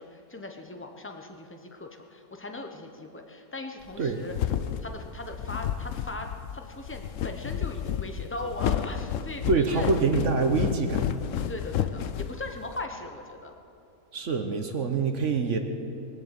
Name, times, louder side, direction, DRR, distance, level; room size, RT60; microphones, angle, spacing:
voice 1, 0.0-4.3 4.8-9.9 10.2-10.4 11.5-13.5, left 2 dB, 15° left, 4 dB, 0.4 m, -39 dB
sound 1, 3.9-12.8, left 9 dB, 75° left, 0.7 m, -31 dB
voice 2, 9.5-11.1 14.1-15.6, right 4 dB, 50° right, 6 dB, 1.1 m, -25 dB
22.0 x 7.8 x 8.1 m, 2.6 s
omnidirectional pair, 2.0 m